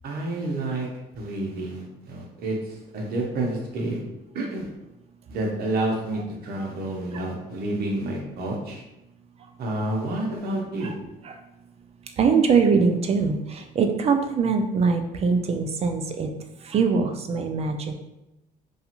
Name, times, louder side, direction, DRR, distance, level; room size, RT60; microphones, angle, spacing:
voice 1, 0.0-0.9 1.2-4.0 4.3-4.7 5.3-8.8 9.6-10.9, right 2 dB, 65° right, -1 dB, 0.8 m, -29 dB
voice 2, 12.2-16.3 16.6-17.9, right 5 dB, 40° right, 5 dB, 0.4 m, -22 dB
2.5 x 2.3 x 2.9 m, 0.92 s
cardioid pair, 110°, 17 cm